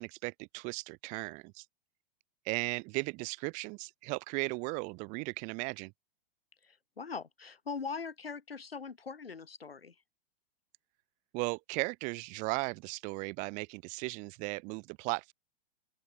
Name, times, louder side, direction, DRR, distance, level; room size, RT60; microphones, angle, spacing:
voice 1, 0.0-1.6 2.4-5.9 11.3-15.3, right 29 dB, 25° right, 0.4 m, -36 dB
voice 2, 6.6-9.9, left 5 dB, 85° left, 4.9 m, -41 dB
open air
figure-of-eight pair, 105°, 29 cm